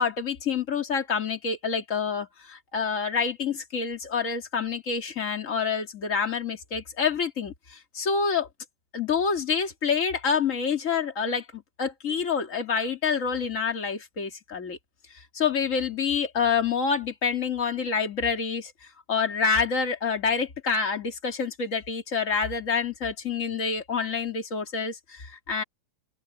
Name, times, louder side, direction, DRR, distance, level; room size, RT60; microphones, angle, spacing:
voice 1, 0.0-8.5 8.9-14.8 15.3-18.7 19.1-25.6, left 5 dB, 30° left, 1.5 m, -27 dB
open air
omnidirectional pair, 4.8 m